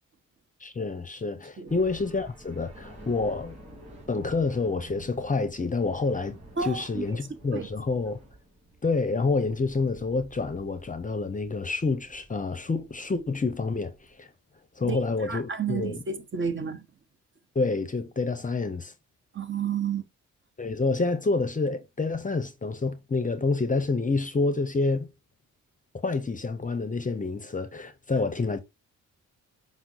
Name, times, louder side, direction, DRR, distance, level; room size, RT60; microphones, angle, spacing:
voice 1, 0.6-3.6 4.1-8.2 8.8-14.3 14.8-16.0 17.5-18.9 20.6-25.1 26.0-28.6, left 3 dB, 25° left, 0.7 m, -28 dB
sound 1, 1.7-14.1, right 1 dB, 20° right, 3.1 m, -50 dB
voice 2, 6.6-7.0 7.5-7.7 14.8-15.0 15.3-16.8 19.3-20.1, right 6 dB, 35° right, 1.0 m, -31 dB
5.8 x 2.0 x 3.9 m
cardioid pair, 65°, 32 cm